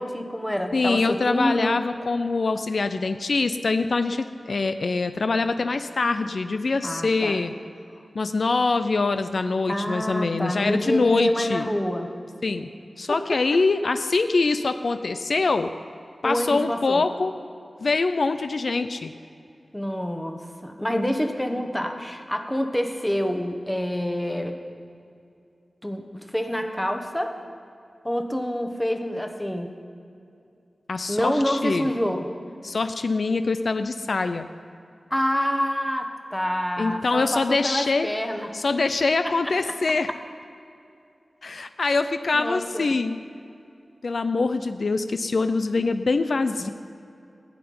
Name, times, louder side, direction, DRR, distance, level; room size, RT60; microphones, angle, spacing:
voice 1, 0.0-1.8 6.8-7.4 9.7-12.1 13.1-13.6 16.2-17.0 19.7-24.6 25.8-27.4 28.0-29.7 31.1-32.3 35.1-38.5 39.2-39.3 42.3-42.9 46.6-46.7, equal, 5° left, 5 dB, 1.1 m, -27 dB
voice 2, 0.7-7.5 8.2-11.7 12.4-12.7 13.0-15.7 16.2-17.3 17.8-19.1 30.9-31.9 32.6-34.5 36.8-38.1 38.5-40.1 41.4-43.2 44.0-46.7, left 3 dB, 65° left, 9 dB, 0.5 m, -24 dB
15.5 x 5.9 x 9.4 m, 2.6 s
wide cardioid pair, 100°, 0 cm